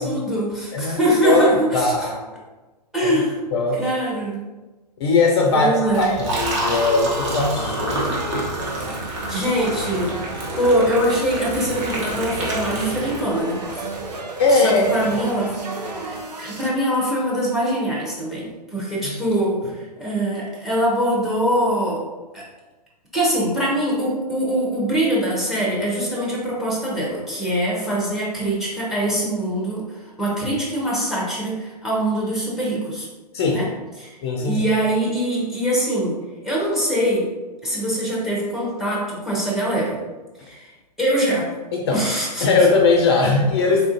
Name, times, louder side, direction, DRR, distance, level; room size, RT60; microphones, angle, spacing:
voice 1, 0.0-2.1 2.9-3.4 3.8-4.4 5.5-6.2 9.3-10.1 10.6-13.6 14.5-15.7 16.0-19.6 20.0-22.0 22.3-22.4 23.1-29.8 30.2-33.1 33.5-33.7 34.0-34.1 34.4-36.2 36.4-37.3 37.6-40.0 40.4-40.7 41.0-41.5 41.9-42.5, right 1 dB, ahead, -4 dB, 0.6 m, -23 dB
voice 2, 0.7-2.2 3.0-3.1 3.5-3.8 5.0-8.2 14.4-15.0 19.0-19.2 33.3-33.6 34.2-34.6 41.7-42.0 42.4-43.9, left 3 dB, 40° left, 1 dB, 0.4 m, -19 dB
Liquid, 5.9-13.6, right 1 dB, 45° right, 0.9 m, -28 dB
sound 1, 6.3-16.7, right 2 dB, 75° right, 0.7 m, -33 dB
3.6 x 2.4 x 2.5 m, 1.2 s
figure-of-eight pair, 120°, 21 cm